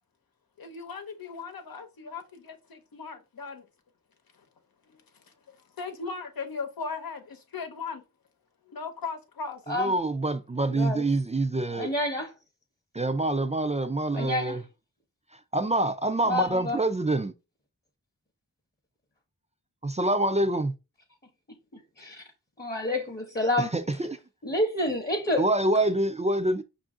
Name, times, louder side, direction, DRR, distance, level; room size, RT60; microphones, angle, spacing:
voice 1, 0.6-3.7 4.3-4.4 4.9-5.0 5.5-8.0 8.7-9.6, left 4 dB, 85° left, 0.9 m, -38 dB
voice 2, 9.7-11.9 12.9-14.6 15.3-17.3 19.8-20.7 23.6-24.2 25.4-26.6, right 2 dB, 20° right, 0.4 m, -26 dB
voice 3, 10.7-11.0 11.7-12.3 14.1-14.6 16.2-16.8 22.0-22.2 22.6-23.7 24.4-25.4, left 1 dB, 30° left, 0.8 m, -28 dB
5.4 x 2.5 x 3.6 m
wide cardioid pair, 90°, 35 cm